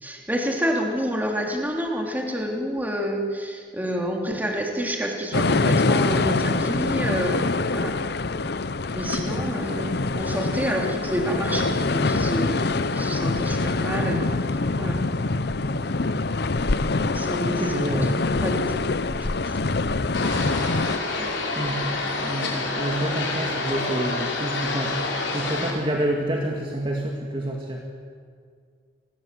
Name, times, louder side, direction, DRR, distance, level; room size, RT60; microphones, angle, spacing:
voice 1, 0.0-8.0 8.9-14.3 14.8-15.0 17.0-18.8 19.2-19.6 21.2-21.4, equal, 10° right, 0 dB, 3.4 m, -29 dB
sound 1, 5.3-21.0, left 3 dB, 55° left, 0.8 m, -24 dB
voice 2, 17.4-18.1 21.0-21.2 21.6-21.9 22.2-27.9, right 1 dB, 25° right, 0 dB, 2.1 m, -28 dB
sound 2, 20.1-25.7, left 3 dB, 70° left, 5.0 m, -28 dB
28.5 x 21.0 x 7.8 m, 2.1 s
head